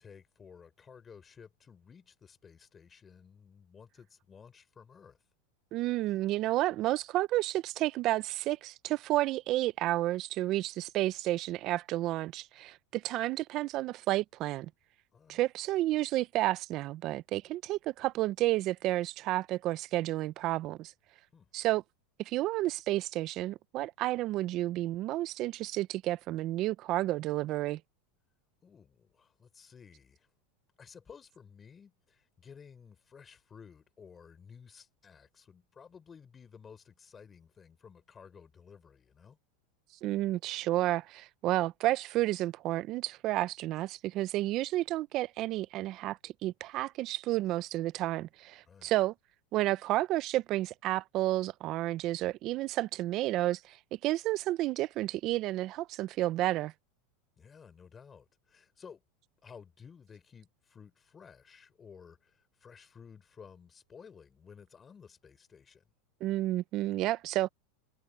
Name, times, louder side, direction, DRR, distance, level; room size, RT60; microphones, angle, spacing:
voice 1, 0.0-5.2 15.1-15.4 21.3-21.5 28.6-30.3 30.8-39.4 48.7-48.9 57.4-59.0 59.4-65.9, left 6 dB, 25° left, 4.4 m, -54 dB
voice 2, 5.7-14.7 15.3-20.9 21.5-21.8 22.2-27.8 40.0-49.1 49.5-56.7 66.2-67.5, right 16 dB, 45° right, 0.7 m, -31 dB
supercardioid pair, 120°, 0 cm